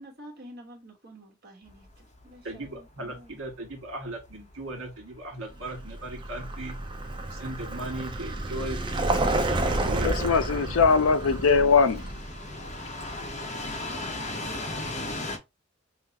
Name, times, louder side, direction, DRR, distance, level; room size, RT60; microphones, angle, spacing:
voice 1, 0.0-3.4, right 1 dB, 50° right, 1.4 m, -48 dB
sound 1, 1.7-15.4, left 2 dB, 35° left, 0.8 m, -40 dB
voice 2, 2.4-6.8 7.3-10.3, right 1 dB, 75° right, 1.7 m, -38 dB
Vehicle, 5.6-14.4, right 2 dB, 25° right, 0.5 m, -31 dB
voice 3, 10.0-12.1, left 5 dB, 80° left, 0.5 m, -21 dB
5.6 x 2.1 x 2.8 m
head